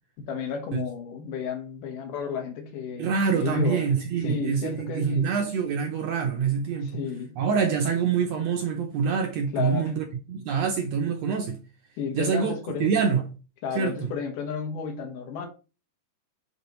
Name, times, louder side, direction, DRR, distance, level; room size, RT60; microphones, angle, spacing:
voice 1, 0.2-3.9 4.2-5.3 6.8-7.3 9.5-9.9 12.0-13.1 13.6-15.5, left 5 dB, 80° left, 2.9 m, -32 dB
voice 2, 3.0-7.0 7.4-11.6 12.1-12.5 12.8-13.2 13.7-14.1, right 6 dB, 70° right, 1.7 m, -26 dB
10.5 x 3.9 x 3.1 m
omnidirectional pair, 3.8 m